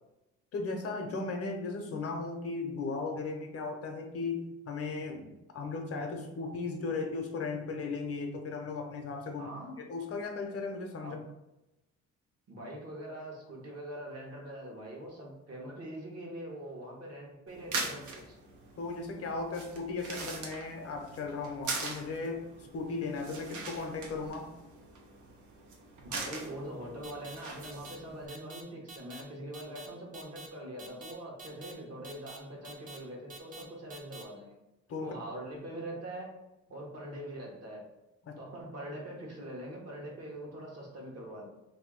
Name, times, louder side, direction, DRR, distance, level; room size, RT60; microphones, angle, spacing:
voice 1, 0.5-9.5 9.8-11.2 18.8-24.5 34.9-35.1 38.3-38.4, left 3 dB, 50° left, 3 dB, 0.7 m, -36 dB
voice 2, 9.4-9.8 11.0-11.2 12.5-18.3 26.0-34.5 35.0-36.3 36.7-37.8 38.4-41.5, right 1 dB, 55° right, -2 dB, 1.2 m, -43 dB
sound 1, 17.5-28.3, right 3 dB, 75° right, 0.7 m, -42 dB
sound 2, 27.0-27.4 27.6-28.0 28.3-28.6 28.9-29.2 29.5-29.9 30.1-30.5 30.8-31.1 31.4-31.7 32.0-32.4 32.6-33.0 33.3-33.6 33.9-34.2, right 2 dB, 30° right, 0.6 m, -47 dB
2.7 x 2.6 x 3.7 m, 0.95 s
cardioid pair, 90°, 30 cm